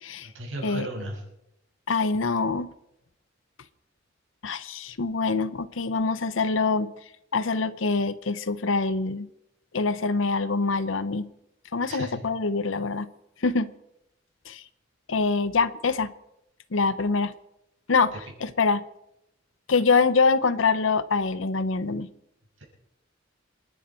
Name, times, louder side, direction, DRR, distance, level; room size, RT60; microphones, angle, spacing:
voice 1, 0.2-1.2 11.9-12.3 22.6-22.7, right 1 dB, 80° right, -2 dB, 6.5 m, -35 dB
voice 2, 1.9-2.7 4.4-6.9 7.3-9.3 9.7-11.3 11.7-13.1 13.4-13.7 14.5-14.6 15.1-16.1 16.7-17.3 17.9-18.1 18.4-18.8 19.7-22.1, left 4 dB, 75° left, 15 dB, 0.8 m, -24 dB
27.5 x 11.0 x 4.4 m, 0.83 s
head